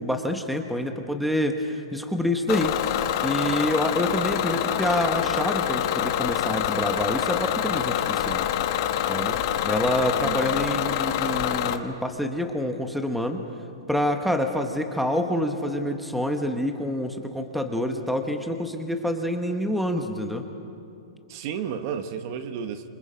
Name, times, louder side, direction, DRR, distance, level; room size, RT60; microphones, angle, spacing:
voice 1, 0.0-2.7 3.2-8.5 9.1-9.4 9.6-13.4 13.9-20.4, left 1 dB, ahead, 5 dB, 1.1 m, -27 dB
Bus / Engine, 2.5-11.8, left 11 dB, 40° left, 1.2 m, -26 dB
voice 2, 10.2-10.6 21.3-22.9, right 7 dB, 40° right, 9 dB, 1.2 m, -32 dB
27.5 x 26.5 x 5.1 m, 2.8 s
hypercardioid pair, 155°, 3 cm